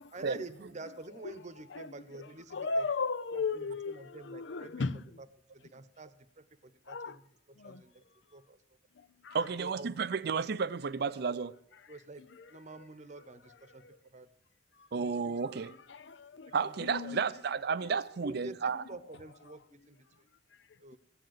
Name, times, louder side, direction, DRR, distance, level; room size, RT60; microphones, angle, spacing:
voice 1, 0.1-2.9 3.3-4.9 5.2-5.3 5.5-7.2 7.6-8.0 8.3-8.6 9.4-10.0 11.9-12.2 12.5-13.8 14.1-14.3 14.9-15.4 16.6-17.1 18.2-19.6 19.9-20.0 20.8-21.0, right 2 dB, 40° right, 0.9 m, -48 dB
voice 2, 2.5-5.0 6.9-7.2 7.6-7.8 9.2-9.4 15.9-16.5 16.9-17.2, left 4 dB, 70° left, 0.6 m, -35 dB
voice 3, 9.3-11.6 14.9-15.8 16.5-18.8, right 5 dB, 60° right, 0.5 m, -32 dB
15.5 x 7.8 x 9.3 m
head